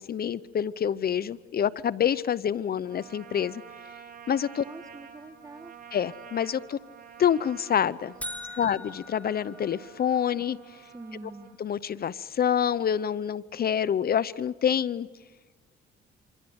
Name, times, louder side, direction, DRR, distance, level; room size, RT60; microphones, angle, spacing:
voice 1, 0.0-3.6 4.3-4.6 5.9-6.8 7.2-8.2 8.6-10.6 11.6-15.1, left 9 dB, 50° left, 18 dB, 0.8 m, -27 dB
Trumpet, 2.9-11.6, right 8 dB, 50° right, 5.4 m, -49 dB
voice 2, 4.6-5.8 8.4-8.7 10.9-11.5, right 2 dB, 15° right, 12 dB, 1.5 m, -45 dB
sound 1, 8.2-10.3, equal, 5° left, 4.9 m, -41 dB
28.0 x 26.5 x 8.0 m, 1.3 s
cardioid pair, 90°, 20 cm